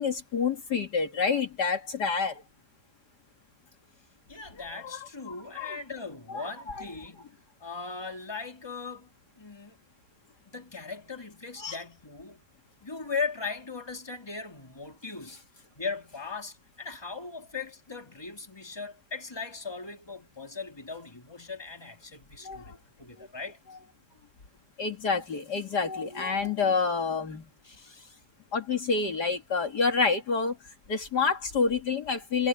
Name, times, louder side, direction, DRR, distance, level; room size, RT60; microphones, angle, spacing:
voice 1, 0.0-2.4 4.9-5.0 5.3-5.8 6.3-6.8 11.6-11.8 22.4-22.8 23.2-23.3 24.8-27.5 28.5-30.6 30.9-32.5, left 5 dB, 60° left, 2.6 m, -28 dB
voice 2, 4.3-9.1 9.4-9.8 10.5-12.4 12.8-15.4 15.7-23.6 27.6-28.2, left 4 dB, 15° left, 2.9 m, -38 dB
omnidirectional pair, 2.0 m